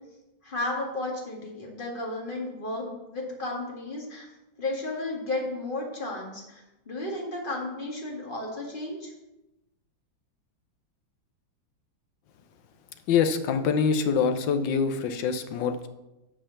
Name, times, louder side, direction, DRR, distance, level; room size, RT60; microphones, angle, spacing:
voice 1, 0.4-4.3 4.6-9.1, left 2 dB, 25° left, -2 dB, 2.1 m, -33 dB
voice 2, 13.1-15.9, left 6 dB, 70° left, 8 dB, 1.4 m, -25 dB
8.9 x 4.9 x 7.1 m, 0.97 s
omnidirectional pair, 2.1 m